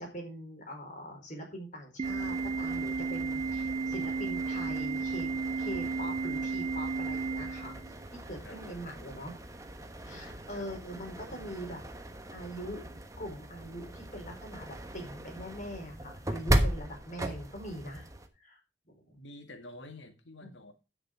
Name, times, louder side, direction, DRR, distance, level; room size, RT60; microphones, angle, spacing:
voice 1, 0.0-5.3 5.6-7.7 8.3-9.4 10.0-11.8 12.3-12.8 13.2-18.1 18.4-18.6 18.9-19.2 20.4-20.5, equal, 45° left, 2 dB, 4.5 m, -42 dB
sound 1, 2.0-18.3, right 1 dB, 20° right, 1.2 m, -38 dB
Organ, 2.0-8.0, right 4 dB, 35° right, 0.4 m, -33 dB
voice 2, 8.4-8.8 10.5-10.7 19.2-20.7, left 1 dB, 85° left, 7 dB, 1.8 m, -50 dB
11.5 x 6.5 x 5.0 m, 0.30 s
head